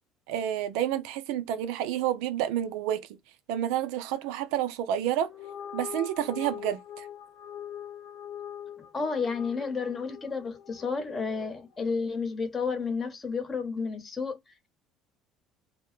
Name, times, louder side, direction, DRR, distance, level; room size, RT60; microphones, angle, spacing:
voice 1, 0.3-3.1 3.5-5.3 5.7-7.1, right 11 dB, 75° right, 0.4 m, -29 dB
sound 1, 5.2-11.8, left 9 dB, 70° left, 1.0 m, -43 dB
voice 2, 8.8-14.4, left 5 dB, 35° left, 0.9 m, -31 dB
2.1 x 2.0 x 3.0 m
supercardioid pair, 75°, 0 cm